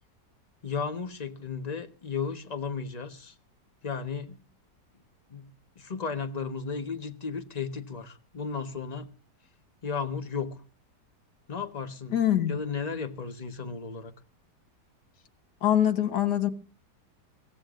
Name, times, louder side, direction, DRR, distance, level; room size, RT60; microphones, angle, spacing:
voice 1, 0.6-3.3 3.8-4.4 5.3-5.5 5.8-9.1 9.8-10.6 11.5-12.1 12.5-14.1, left 5 dB, 25° left, 1.1 m, -34 dB
voice 2, 12.1-12.6 15.6-16.5, left 11 dB, 70° left, 1.8 m, -24 dB
23.0 x 16.0 x 2.5 m
omnidirectional pair, 1.9 m